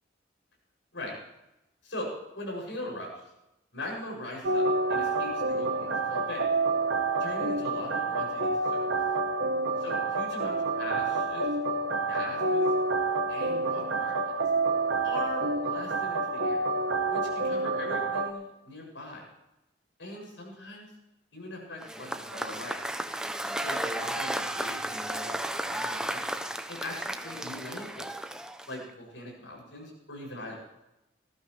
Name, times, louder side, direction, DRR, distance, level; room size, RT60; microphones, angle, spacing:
voice 1, 1.8-3.2 3.7-4.6 4.9-6.4 7.2-8.8 9.8-11.5 12.1-12.7 13.3-14.4 15.0-16.6 17.1-19.2 20.0-20.9 21.3-22.8 23.6-26.2 26.7-28.1 28.7-30.6, left 1 dB, 90° left, -1 dB, 7.2 m, -40 dB
sound 1, 4.4-18.3, right 3 dB, 85° right, 1.3 m, -28 dB
Cheering / Applause / Crowd, 21.8-28.9, right 1 dB, 5° right, 0.7 m, -34 dB
19.5 x 15.5 x 3.3 m, 0.92 s
head